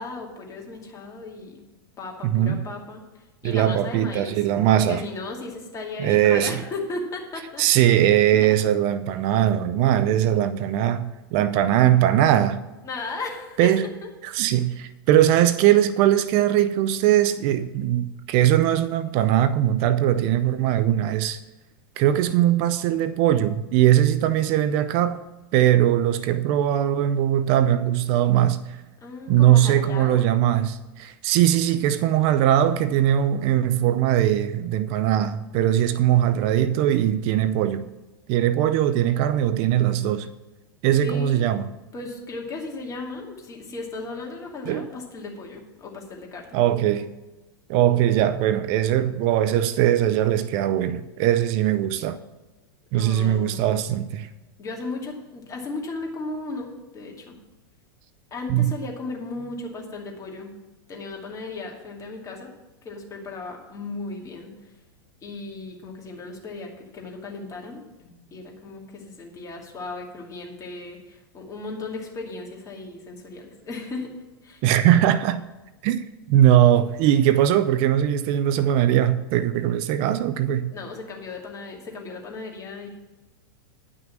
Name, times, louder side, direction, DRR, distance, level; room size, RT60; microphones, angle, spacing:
voice 1, 0.0-1.6 2.0-4.4 4.7-7.6 12.8-13.7 29.0-30.2 41.0-41.6 41.9-46.6 52.9-53.7 54.6-57.4 58.3-60.5 60.9-62.5 62.8-64.5 65.2-74.1 74.4-74.6 80.7-82.9, left 3 dB, 25° left, 2.5 m, -36 dB
voice 2, 2.2-2.7 3.4-5.0 6.0-6.6 7.6-12.6 13.6-13.9 14.2-21.4 22.0-25.2 25.5-28.8 29.3-37.9 38.3-40.3 40.8-41.7 44.7-44.9 46.5-47.1 47.7-52.2 52.9-54.3 58.5-58.7 74.6-75.4 75.8-80.7, right 11 dB, 45° right, 0.5 m, -20 dB
10.5 x 6.2 x 7.3 m
hypercardioid pair, 110°, 13 cm